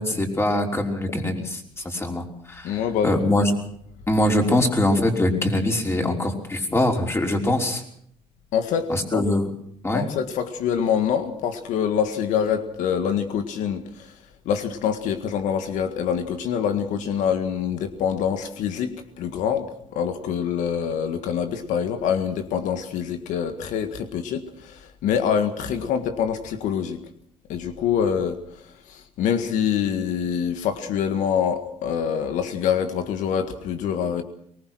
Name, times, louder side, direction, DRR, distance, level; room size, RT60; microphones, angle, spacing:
voice 1, 0.0-3.5 4.1-7.8 8.9-9.5 9.8-10.1, left 1 dB, 20° left, 2 dB, 5.5 m, -23 dB
voice 2, 2.6-3.2 8.5-9.2 9.9-14.2 14.4-27.0 27.5-34.2, left 8 dB, 85° left, 8 dB, 1.8 m, -25 dB
23.5 x 20.5 x 6.3 m, 0.67 s
cardioid pair, 90°, 13 cm